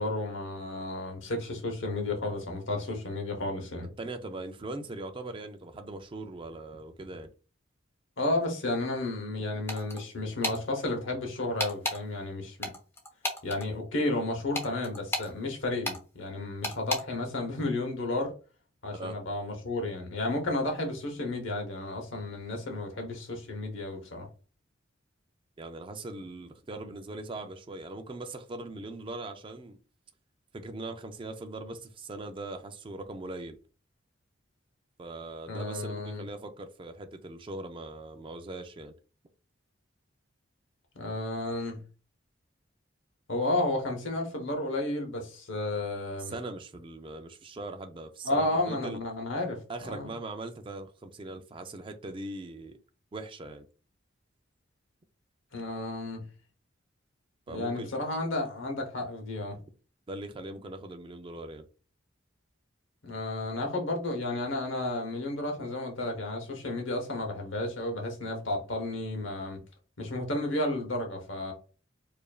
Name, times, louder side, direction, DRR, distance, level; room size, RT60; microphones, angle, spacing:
voice 1, 0.0-3.9 8.2-12.7 13.4-18.3 18.8-24.3 35.5-36.2 40.9-41.8 43.3-46.3 48.2-50.1 55.5-56.2 57.5-59.6 63.0-69.6 70.0-71.5, left 2 dB, 70° left, 1.0 m, -32 dB
voice 2, 4.0-7.3 18.9-19.2 25.6-29.8 30.5-33.6 35.0-38.9 46.2-49.0 49.7-52.8 53.1-53.7 57.5-57.9 60.1-61.6, right 2 dB, 25° right, 0.4 m, -40 dB
sound 1, 9.7-10.0 10.4-10.6 11.6-12.0 12.6-13.6 14.5-15.3 15.8-16.0 16.6-17.0, left 1 dB, 10° left, 0.7 m, -32 dB
4.9 x 2.5 x 2.3 m
head